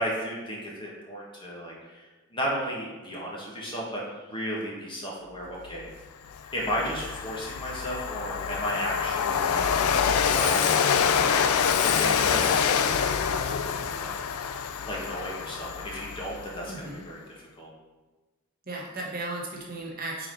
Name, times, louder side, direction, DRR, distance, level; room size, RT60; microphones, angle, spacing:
voice 1, 0.0-5.9 6.5-14.2 14.9-17.7, equal, 20° left, -3 dB, 1.2 m, -34 dB
Train, 5.8-5.9 6.3-16.7, left 7 dB, 85° left, 0.4 m, -26 dB
voice 2, 16.7-17.1 18.7-20.3, right 2 dB, 40° right, -2 dB, 1.1 m, -35 dB
4.6 x 4.0 x 5.2 m, 1.2 s
head